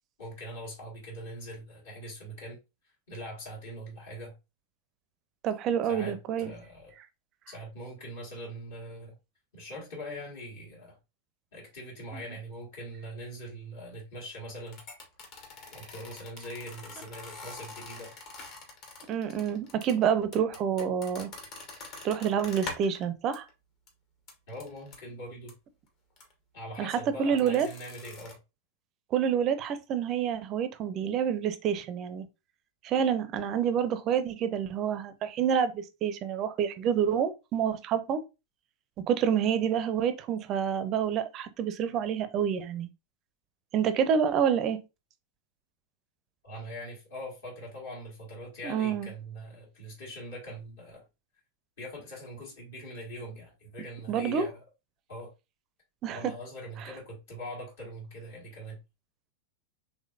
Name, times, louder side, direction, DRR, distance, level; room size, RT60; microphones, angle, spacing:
voice 1, 0.2-2.6 3.1-4.3 5.9-6.9 7.5-9.1 9.5-11.0 11.5-14.8 15.7-18.1 24.5-25.5 26.5-28.4 46.4-51.0 51.8-54.6 55.1-55.3 56.1-58.8, equal, 60° left, 1.6 m, -42 dB
voice 2, 5.4-6.5 12.1-12.2 19.1-21.3 22.0-23.4 26.8-27.7 29.1-32.2 32.8-38.2 39.1-42.9 43.7-44.8 48.6-49.1 54.1-54.5 56.0-56.3, right 8 dB, 35° right, 0.5 m, -28 dB
sound 1, 14.7-23.1 23.3-23.5 23.9-24.0 24.3-25.0 25.5-25.6 26.2-26.3 27.4-28.4, left 3 dB, 40° left, 1.0 m, -45 dB
3.7 x 3.0 x 2.4 m
figure-of-eight pair, 90°, 0 cm